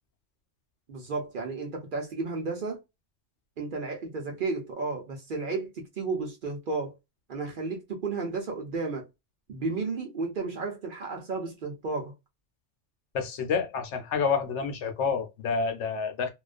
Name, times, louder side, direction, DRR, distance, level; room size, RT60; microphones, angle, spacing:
voice 1, 0.9-2.8 3.6-7.0 7.3-9.1 9.5-12.1, right 3 dB, 55° right, 0.7 m, -33 dB
voice 2, 13.1-16.3, left 5 dB, 70° left, 0.9 m, -28 dB
2.4 x 2.2 x 2.3 m
omnidirectional pair, 1.3 m